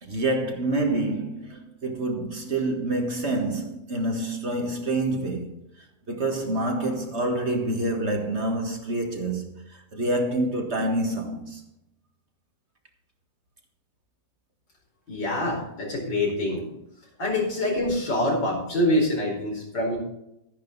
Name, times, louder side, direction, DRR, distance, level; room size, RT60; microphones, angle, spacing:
voice 1, 0.0-5.5 6.1-11.6, right 2 dB, 40° right, 1.8 m, -27 dB
voice 2, 15.1-16.7 17.2-20.0, left 1 dB, 85° left, 5.3 m, -25 dB
12.5 x 10.0 x 4.0 m
omnidirectional pair, 1.9 m